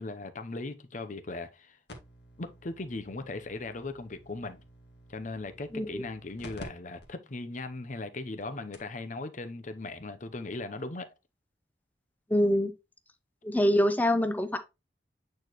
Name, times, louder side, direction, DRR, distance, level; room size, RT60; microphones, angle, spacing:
voice 1, 0.0-1.8 2.4-4.7 5.1-11.1, left 2 dB, 40° left, 0.7 m, -38 dB
sound 1, 1.9-6.6 7.0-7.1 7.7-7.8 8.4-8.5 8.7-9.0 10.2-10.3, left 1 dB, 60° left, 1.6 m, -51 dB
voice 2, 12.3-12.7 13.4-14.6, equal, 10° left, 0.7 m, -25 dB
8.6 x 4.2 x 3.0 m
head